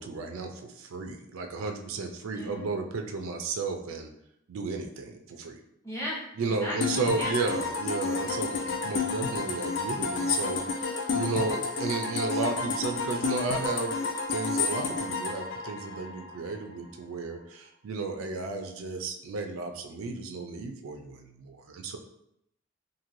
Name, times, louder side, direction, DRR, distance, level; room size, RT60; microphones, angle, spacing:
voice 1, 0.0-4.1 4.5-5.6 6.4-14.0 14.3-22.0, right 3 dB, 90° right, 5 dB, 0.4 m, -33 dB
voice 2, 2.3-2.7 5.8-7.5, equal, 15° left, -5 dB, 0.8 m, -37 dB
sound 1, 6.8-16.5, left 4 dB, 60° left, 0.4 m, -31 dB
3.0 x 2.6 x 2.6 m, 0.76 s
head